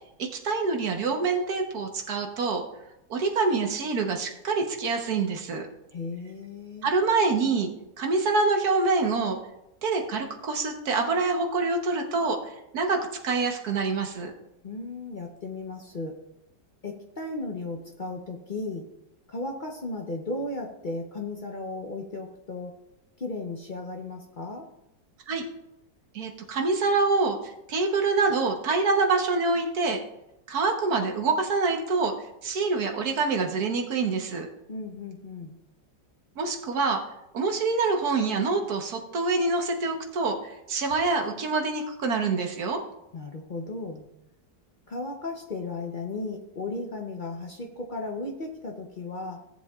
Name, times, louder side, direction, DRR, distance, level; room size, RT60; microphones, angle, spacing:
voice 1, 0.2-2.6 3.1-5.7 6.8-7.7 8.0-9.4 9.8-14.3 25.3-25.4 26.1-30.0 30.5-32.1 32.4-34.5 36.4-37.0 37.3-42.8, right 4 dB, 60° right, 3 dB, 1.5 m, -26 dB
voice 2, 5.9-6.9 14.6-16.2 16.8-18.8 19.3-22.7 23.2-24.7 34.7-35.6 43.1-44.1 44.9-49.4, left 2 dB, 50° left, 2 dB, 0.6 m, -35 dB
17.0 x 7.4 x 2.4 m, 0.88 s
omnidirectional pair, 2.0 m